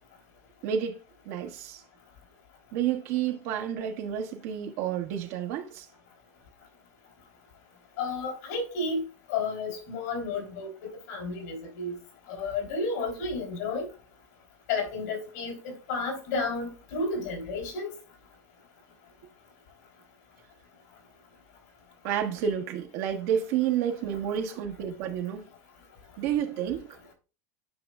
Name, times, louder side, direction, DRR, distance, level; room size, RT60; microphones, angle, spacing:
voice 1, 0.6-1.0 1.2-1.8 2.7-5.9 22.0-25.5 26.2-26.9, right 9 dB, 70° right, 1.3 m, -30 dB
voice 2, 8.0-9.0 9.3-10.7 11.1-11.9 12.3-13.9 14.7-17.9, left 3 dB, 85° left, 3.5 m, -31 dB
9.4 x 5.3 x 2.4 m
supercardioid pair, 125°, 9 cm